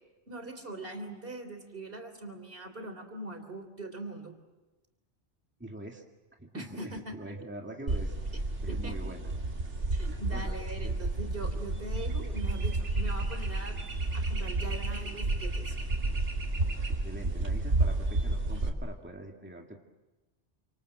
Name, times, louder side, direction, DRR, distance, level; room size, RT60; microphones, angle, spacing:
voice 1, 0.3-4.3 6.5-7.2 8.7-9.0 9.9-13.9 14.1-15.8, right 2 dB, 50° right, 6 dB, 3.6 m, -41 dB
voice 2, 5.6-6.0 6.4-8.1 8.6-9.3 10.3-10.5 10.8-10.9 17.0-19.8, right 1 dB, 10° right, 1 dB, 2.1 m, -43 dB
sound 1, 7.9-18.7, right 2 dB, 85° right, 3.0 m, -31 dB
28.5 x 26.5 x 7.6 m, 1.1 s
omnidirectional pair, 1.2 m